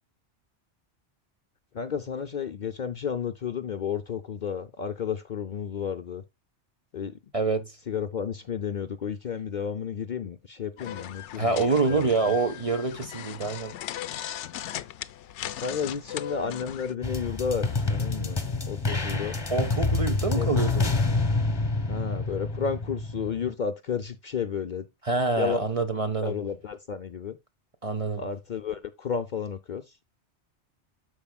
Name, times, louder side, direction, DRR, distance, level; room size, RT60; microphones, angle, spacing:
voice 1, 1.7-6.2 6.9-7.1 7.9-11.6 11.9-12.1 15.6-18.4 18.6-19.4 20.3-20.5 21.9-24.9 25.4-25.7 26.2-27.4 28.2-29.8, left 6 dB, 50° left, 0.6 m, -32 dB
voice 2, 7.3-7.7 11.4-13.7 19.5-20.9 25.0-26.4 27.8-28.2, right 3 dB, 35° right, 0.7 m, -26 dB
sound 1, 10.8-16.9, left 11 dB, 80° left, 0.9 m, -38 dB
sound 2, 17.0-23.5, left 3 dB, 25° left, 1.0 m, -27 dB
13.0 x 4.8 x 2.2 m
omnidirectional pair, 1.2 m